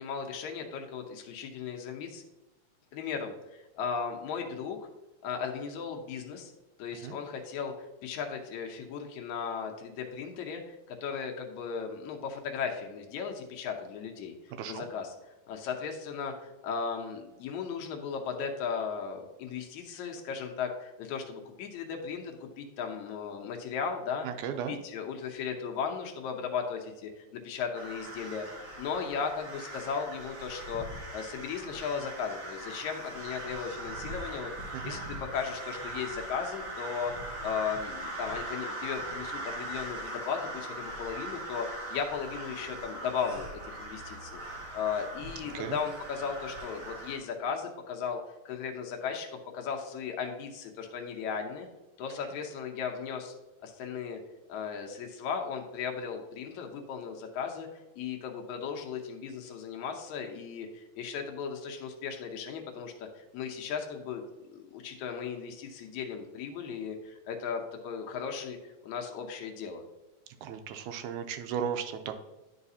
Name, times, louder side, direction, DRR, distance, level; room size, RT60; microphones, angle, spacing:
voice 1, 0.0-2.2 2.9-4.9 5.2-6.5 6.8-7.7 8.0-14.3 14.7-15.1 15.5-24.3 24.7-30.9 31.1-37.1 37.4-48.2 48.5-49.3 49.5-51.7 52.0-53.3 53.6-54.2 54.5-64.2 64.5-68.6 68.8-69.8, left 6 dB, 80° left, 2 dB, 2.1 m, -36 dB
voice 2, 14.5-14.9 24.2-24.8 34.7-35.0 45.5-45.8 70.4-72.2, right 8 dB, 85° right, 7 dB, 2.0 m, -36 dB
sound 1, 27.7-47.2, right 1 dB, 55° right, 1.2 m, -40 dB
10.5 x 4.8 x 2.7 m, 1.0 s
omnidirectional pair, 3.4 m